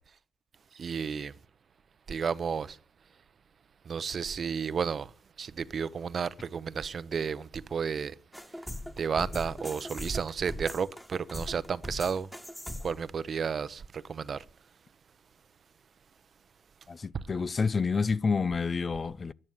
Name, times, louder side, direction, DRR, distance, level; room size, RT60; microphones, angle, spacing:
voice 1, 0.7-1.3 2.1-2.8 3.8-5.1 5.4-8.1 9.0-12.3 12.8-14.4 17.1-17.2, right 6 dB, 55° right, 0.8 m, -32 dB
sound 1, 8.3-13.1, left 1 dB, 5° left, 1.7 m, -40 dB
voice 2, 16.9-19.3, left 5 dB, 40° left, 0.6 m, -29 dB
12.0 x 11.0 x 7.3 m
supercardioid pair, 65°, 0 cm